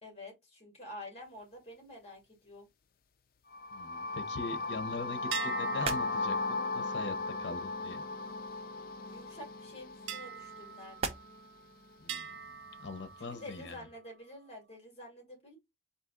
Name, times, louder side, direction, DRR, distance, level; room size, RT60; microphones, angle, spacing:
voice 1, 0.0-2.7 9.1-11.1 13.3-15.6, left 1 dB, 35° left, 2.1 m, -48 dB
sound 1, 3.5-11.4, left 3 dB, 50° left, 0.4 m, -37 dB
voice 2, 3.7-8.0 12.0-12.5 12.8-13.8, left 3 dB, 75° left, 0.8 m, -42 dB
sound 2, 4.4-13.8, right 4 dB, 35° right, 0.6 m, -46 dB
sound 3, 5.3-9.0 10.1-11.6 12.1-13.8, right 6 dB, 85° right, 0.4 m, -44 dB
4.1 x 2.7 x 3.8 m
head